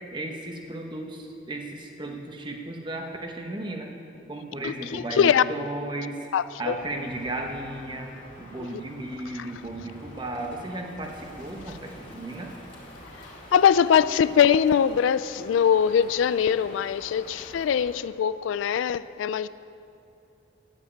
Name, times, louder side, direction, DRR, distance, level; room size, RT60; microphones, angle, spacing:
voice 1, 0.1-3.9 4.3-6.2 6.6-8.1 8.4-12.5, right 2 dB, 25° right, 1.1 m, -35 dB
voice 2, 4.6-5.4 6.3-6.7 8.6-8.8 9.4-9.5 13.5-19.5, left 8 dB, 75° left, 0.3 m, -22 dB
Crow, 6.6-18.1, left 1 dB, 40° left, 2.6 m, -46 dB
9.3 x 8.6 x 8.6 m
head